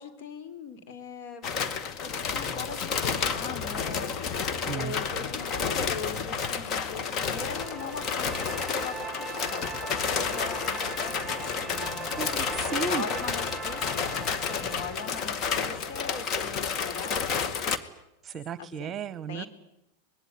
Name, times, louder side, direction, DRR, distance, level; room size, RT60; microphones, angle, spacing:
voice 1, 0.0-1.7 2.0-3.0 3.3-9.7 10.0-12.1 12.7-17.3 18.6-18.9 19.3-19.5, left 5 dB, 60° left, 9 dB, 3.9 m, -40 dB
sound 1, 1.4-17.8, left 6 dB, 40° left, 2.1 m, -31 dB
sound 2, 6.9-17.0, right 4 dB, 10° right, 4.8 m, -40 dB
voice 2, 12.2-13.0 18.3-19.4, right 6 dB, 30° right, 17 dB, 1.3 m, -34 dB
25.0 x 20.5 x 9.5 m, 0.84 s
hypercardioid pair, 105°, 0 cm